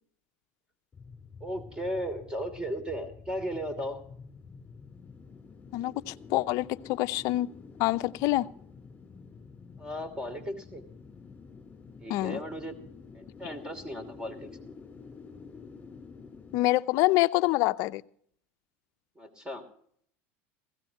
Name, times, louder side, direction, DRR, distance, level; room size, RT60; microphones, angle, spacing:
sound 1, 0.9-16.6, left 5 dB, 20° left, 3.8 m, -49 dB
voice 1, 1.4-4.0 9.8-10.8 12.0-12.8 13.1-14.7 19.2-19.7, equal, 10° right, 2.9 m, -36 dB
voice 2, 5.7-7.5 7.8-8.5 12.1-12.4 16.5-18.0, left 18 dB, 55° left, 0.6 m, -26 dB
19.5 x 16.0 x 2.9 m
supercardioid pair, 120°, 7 cm